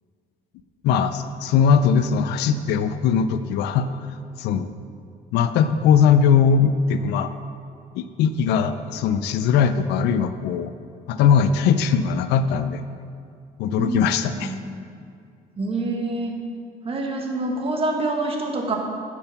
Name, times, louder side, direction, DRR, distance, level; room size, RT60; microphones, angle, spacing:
voice 1, 0.8-3.9 4.4-4.7 5.3-7.3 7.9-10.7 11.1-12.8 13.6-14.5, left 7 dB, 80° left, 10 dB, 0.5 m, -20 dB
voice 2, 15.6-16.4 16.8-18.7, right 2 dB, 35° right, 1 dB, 1.4 m, -26 dB
8.8 x 5.8 x 5.7 m, 2.4 s
cardioid pair, 110°, 17 cm